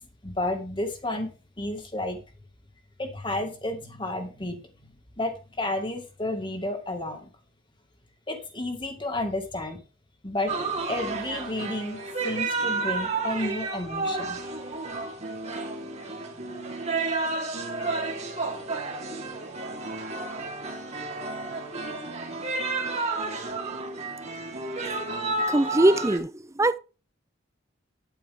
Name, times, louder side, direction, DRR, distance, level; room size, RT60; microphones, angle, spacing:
voice 1, 0.2-1.3 1.6-2.2 3.0-4.6 5.2-7.3 8.3-9.8 10.2-10.6 10.9-14.4, left 1 dB, 25° left, 2.0 m, -31 dB
sound 1, 10.5-26.2, right 3 dB, 35° right, 2.2 m, -31 dB
voice 2, 25.5-26.3 26.6-26.8, right 1 dB, 15° right, 0.5 m, -21 dB
10.0 x 8.9 x 3.7 m
head